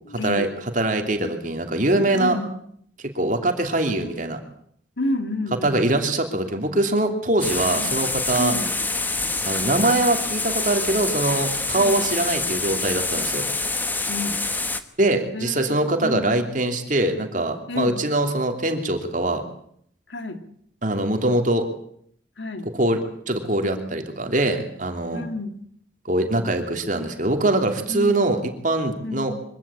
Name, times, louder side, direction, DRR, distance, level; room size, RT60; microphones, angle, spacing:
voice 1, 0.1-0.5 2.1-2.6 5.0-5.8 7.7-7.9 8.4-8.7 11.7-12.1 14.1-14.4 15.3-16.3 17.7-18.0 20.1-20.4 22.4-22.7 25.1-25.6 27.9-28.2 29.0-29.3, left 2 dB, 75° left, 8 dB, 2.1 m, -30 dB
voice 2, 0.7-2.4 3.1-4.4 5.6-8.5 9.4-13.4 15.0-19.4 20.8-21.6 22.7-23.0 23.3-25.2 26.1-29.3, right 2 dB, 45° right, 5 dB, 3.0 m, -23 dB
sound 1, 7.4-14.8, left 3 dB, 10° left, 1.1 m, -26 dB
24.0 x 15.5 x 8.7 m, 0.67 s
head